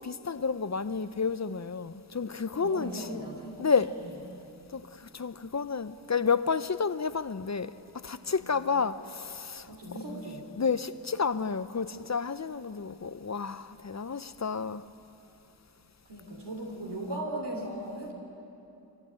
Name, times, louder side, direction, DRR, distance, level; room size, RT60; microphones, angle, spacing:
voice 1, 0.0-3.2 3.6-4.0 4.7-7.7 8.0-9.7 10.1-10.2 10.6-14.8, left 5 dB, 40° left, 0.8 m, -30 dB
voice 2, 2.6-3.7 8.2-8.6 9.7-10.4 16.1-18.1, right 1 dB, 70° right, 3.6 m, -38 dB
23.5 x 18.0 x 9.0 m
cardioid pair, 40°, 42 cm